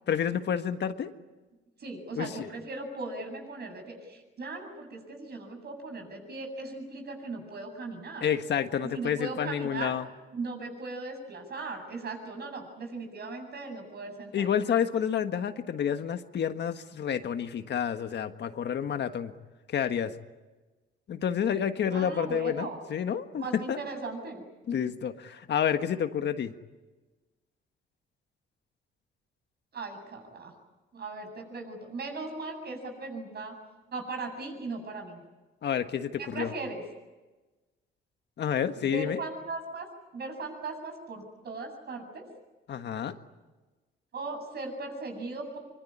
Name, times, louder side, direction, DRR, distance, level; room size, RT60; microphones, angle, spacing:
voice 1, 0.1-1.1 2.1-2.5 8.2-10.1 14.3-19.3 19.7-20.1 21.1-23.8 24.7-26.5 35.6-36.5 38.4-39.2 42.7-43.1, left 8 dB, 60° left, 8 dB, 1.6 m, -29 dB
voice 2, 1.8-8.3 8.9-10.0 10.3-14.5 21.9-22.8 23.4-24.4 29.7-30.5 30.9-33.5 33.9-35.2 36.2-36.8 38.8-39.9 40.1-42.3 44.1-45.6, right 3 dB, 55° right, 4 dB, 7.9 m, -38 dB
24.0 x 23.5 x 9.9 m, 1.2 s
cardioid pair, 90°, 20 cm